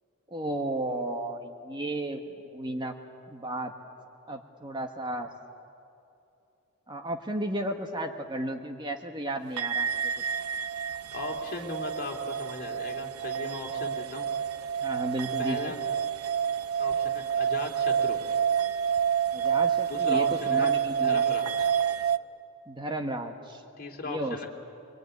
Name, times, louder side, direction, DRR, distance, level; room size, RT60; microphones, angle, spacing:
voice 1, 0.3-2.9 3.3-3.7 4.3-5.3 6.9-10.0 14.8-15.7 19.3-21.2 22.7-23.6 24.0-24.4, right 1 dB, 20° right, 4 dB, 1.3 m, -33 dB
sound 1, 9.6-22.2, right 8 dB, 90° right, 0.7 m, -28 dB
voice 2, 11.1-14.3 15.4-15.9 16.8-18.2 19.9-20.7 21.0-21.7 23.8-24.5, left 2 dB, 45° left, 1 dB, 2.9 m, -37 dB
24.5 x 23.0 x 9.5 m, 2.7 s
head